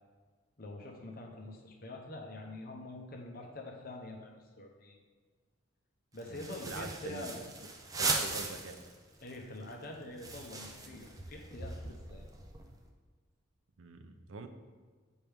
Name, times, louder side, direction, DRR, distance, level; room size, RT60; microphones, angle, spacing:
voice 1, 0.6-5.0 6.1-7.4 7.9-8.0 9.2-12.2, left 2 dB, 45° left, 1 dB, 0.8 m, -45 dB
sound 1, 6.2-8.9 9.3-9.4 9.6-12.8, right 3 dB, 15° right, 0.5 m, -38 dB
voice 2, 6.3-7.4 8.0-8.9 13.8-14.5, right 4 dB, 75° right, 7 dB, 0.5 m, -44 dB
6.9 x 4.4 x 3.5 m, 1.5 s
head